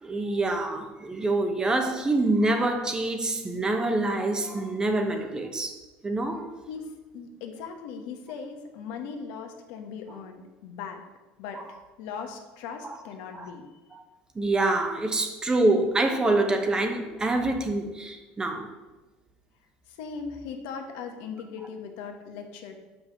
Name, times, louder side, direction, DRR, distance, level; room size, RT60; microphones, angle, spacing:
voice 1, 0.0-5.8 6.0-6.5 11.5-11.6 12.8-13.0 13.3-13.5 13.9-14.0 14.3-18.7, right 2 dB, 20° right, 1.1 m, -26 dB
voice 2, 7.1-11.0 11.4-13.6 19.9-22.8, left 6 dB, 75° left, 1.3 m, -39 dB
5.7 x 5.5 x 6.8 m
supercardioid pair, 100°, 4 cm